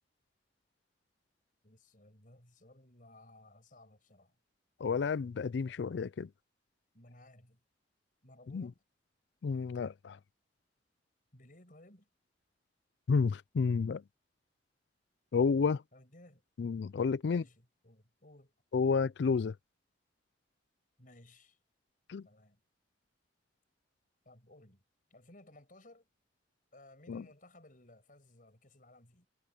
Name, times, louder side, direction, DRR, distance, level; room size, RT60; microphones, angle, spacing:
voice 1, 1.6-4.3 6.9-7.6 8.2-8.8 11.3-12.1 15.9-16.4 17.2-18.5 21.0-21.6 22.2-22.6 24.2-24.8 25.1-26.1 26.7-29.3, left 1 dB, 45° left, 6.3 m, -58 dB
voice 2, 4.8-6.3 8.5-8.7 9.4-10.2 13.1-14.0 15.3-15.8 16.6-17.4 18.7-19.6 22.1-22.3 27.1-27.3, left 5 dB, 65° left, 0.4 m, -31 dB
head